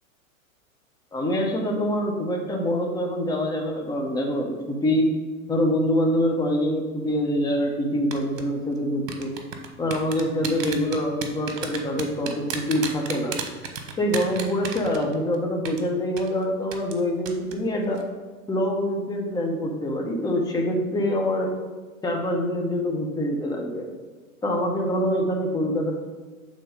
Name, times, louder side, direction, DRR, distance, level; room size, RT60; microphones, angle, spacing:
voice 1, 1.1-5.1 5.5-9.3 9.8-13.3 14.0-18.0 18.5-21.5 22.0-23.9 24.4-25.9, equal, 10° left, 1 dB, 0.9 m, -25 dB
sound 1, 8.1-8.4 9.1-15.3 15.6-15.8 16.2-16.3 16.7-17.0 17.3-17.5 17.8-18.0, right 7 dB, 65° right, 1.1 m, -32 dB
6.9 x 3.8 x 5.1 m, 1.4 s
hypercardioid pair, 105°, 42 cm